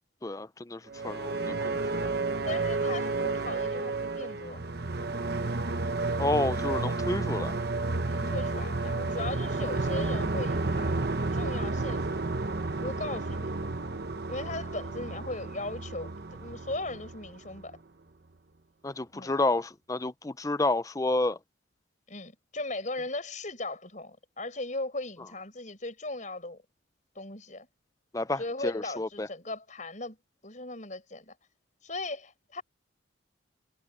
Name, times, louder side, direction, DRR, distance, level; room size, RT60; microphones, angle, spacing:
voice 1, 0.2-2.1 6.2-7.5 18.8-21.4 28.1-29.3, left 2 dB, 15° left, 0.5 m, -30 dB
sound 1, 0.9-17.8, right 3 dB, 50° right, 1.0 m, -31 dB
voice 2, 2.4-4.6 8.1-12.3 12.8-13.7 14.3-17.8 19.1-19.4 22.1-26.6 27.2-27.7 28.4-30.2 30.4-31.3 31.8-32.6, left 2 dB, 40° left, 5.3 m, -38 dB
head